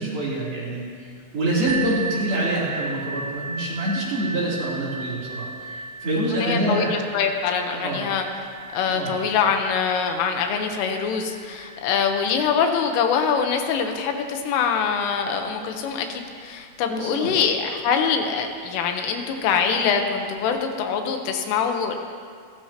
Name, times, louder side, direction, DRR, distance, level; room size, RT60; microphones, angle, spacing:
voice 1, 0.0-6.9 7.7-8.0 8.8-9.1 16.9-17.3, right 1 dB, 50° right, -7 dB, 4.8 m, -26 dB
sound 1, 1.7-17.2 18.0-18.1 18.6-18.7, right 3 dB, 85° right, 1.8 m, -37 dB
voice 2, 6.3-8.3 8.7-22.0, left 6 dB, 80° left, 4 dB, 3.5 m, -24 dB
29.5 x 13.0 x 2.9 m, 2.1 s
omnidirectional pair, 5.8 m